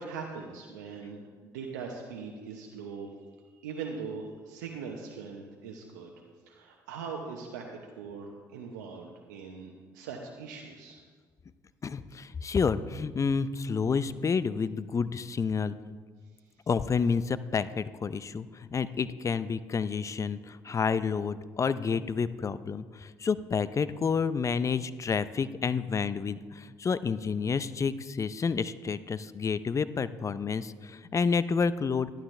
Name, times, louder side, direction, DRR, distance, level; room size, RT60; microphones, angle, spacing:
voice 1, 0.0-3.1 3.6-6.1 6.5-7.7 8.0-11.0, right 5 dB, 90° right, 0 dB, 1.0 m, -41 dB
voice 2, 11.8-15.7 16.7-32.1, left 5 dB, 35° left, 15 dB, 0.5 m, -29 dB
11.5 x 11.0 x 3.3 m, 1.5 s
hypercardioid pair, 65°, 10 cm